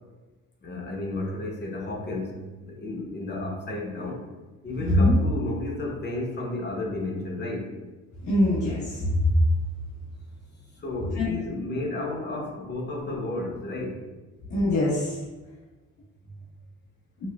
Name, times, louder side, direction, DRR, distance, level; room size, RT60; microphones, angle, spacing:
voice 1, 0.6-4.2 4.6-7.7 10.8-14.0, left 2 dB, 35° left, -1 dB, 1.0 m, -32 dB
voice 2, 4.8-5.1 8.2-9.4 11.2-11.3 14.5-15.2, left 1 dB, 70° left, -9 dB, 1.1 m, -22 dB
5.4 x 2.3 x 2.3 m, 1.2 s
cardioid pair, 90°, 30 cm